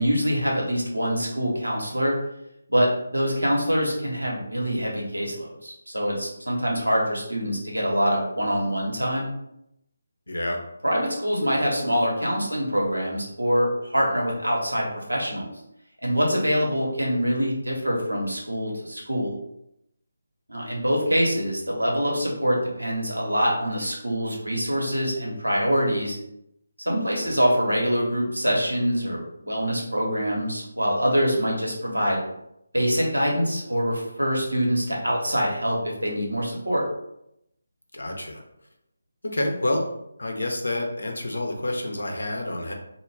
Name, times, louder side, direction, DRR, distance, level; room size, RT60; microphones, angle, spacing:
voice 1, 0.0-2.1 2.7-9.3 10.8-15.5 16.0-19.3 20.5-26.2 26.8-32.2 32.7-36.9, equal, 85° right, -2 dB, 0.9 m, -24 dB
voice 2, 10.3-10.6 27.2-27.4 37.9-38.4 39.2-39.9 40.2-42.7, left 1 dB, 70° left, 2 dB, 0.6 m, -28 dB
2.4 x 2.1 x 3.3 m, 0.80 s
figure-of-eight pair, 155°, 0 cm